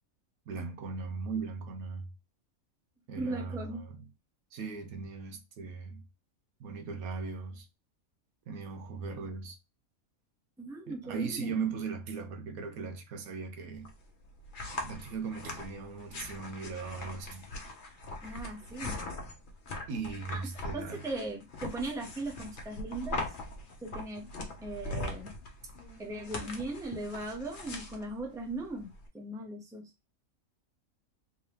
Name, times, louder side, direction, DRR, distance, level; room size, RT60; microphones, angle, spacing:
voice 1, 0.5-2.1 3.1-4.1 4.5-6.0 6.6-7.7 8.5-9.6 10.9-13.9 14.8-17.5 19.9-21.0, right 5 dB, 85° right, 1.3 m, -38 dB
voice 2, 3.1-3.8 10.6-11.7 18.2-19.0 20.3-20.5 20.7-23.4 23.8-24.3 24.6-25.3 26.0-29.9, right 2 dB, 5° right, 0.6 m, -38 dB
sound 1, 13.8-29.1, left 2 dB, 45° left, 0.9 m, -41 dB
3.7 x 2.7 x 3.2 m
omnidirectional pair, 1.5 m